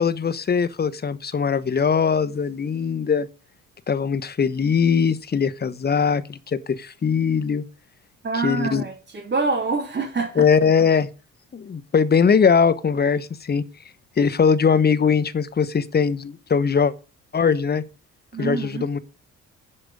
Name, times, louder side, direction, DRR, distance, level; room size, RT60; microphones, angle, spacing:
voice 1, 0.0-3.3 3.9-7.6 8.4-8.8 10.4-11.1 11.5-13.6 14.2-16.9 17.3-17.8 18.4-19.0, left 6 dB, 35° left, 1.0 m, -20 dB
voice 2, 8.2-10.4 18.3-18.9, right 4 dB, 40° right, 3.0 m, -26 dB
10.0 x 5.2 x 8.2 m
cardioid pair, 90°, 30 cm